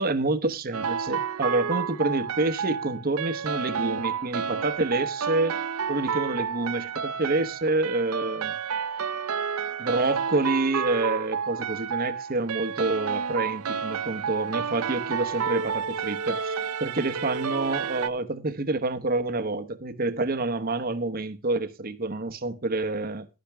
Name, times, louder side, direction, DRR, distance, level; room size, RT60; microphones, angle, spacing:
voice 1, 0.0-5.6 5.9-8.5 9.8-16.5 16.8-23.3, right 2 dB, 40° right, 1.1 m, -28 dB
sound 1, 0.7-18.1, right 6 dB, 80° right, 0.7 m, -30 dB
11.5 x 10.5 x 3.5 m
head